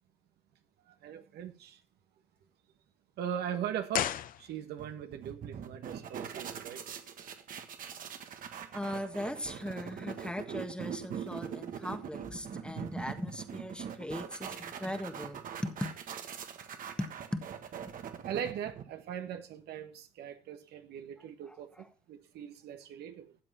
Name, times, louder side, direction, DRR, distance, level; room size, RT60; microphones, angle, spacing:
voice 1, 0.9-1.8 3.2-4.1 4.4-6.8 18.2-23.4, right 9 dB, 75° right, 1.7 m, -40 dB
sound 1, 3.9-5.0 5.3-5.4, left 11 dB, 55° left, 0.7 m, -34 dB
sound 2, 4.8-19.1, right 8 dB, 55° right, 1.6 m, -42 dB
voice 2, 8.7-16.0 17.0-17.5 17.8-17.9 21.5-21.9, left 1 dB, 5° left, 1.6 m, -39 dB
13.5 x 7.6 x 4.2 m
cardioid pair, 110°, 17 cm